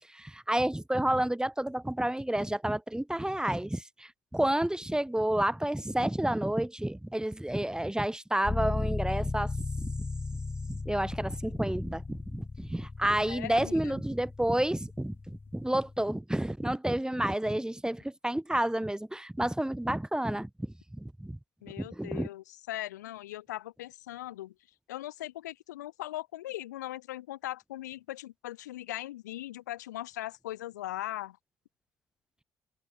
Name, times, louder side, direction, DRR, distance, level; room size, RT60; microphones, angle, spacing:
voice 1, 0.0-10.1 10.7-21.4 21.8-22.3, right 1 dB, 10° right, 3.0 m, -30 dB
sound 1, 8.4-16.2, left 3 dB, 25° left, 1.7 m, -36 dB
voice 2, 13.3-14.0 21.6-24.5 24.9-31.4, left 15 dB, 90° left, 1.0 m, -39 dB
hypercardioid pair, 45°, 9 cm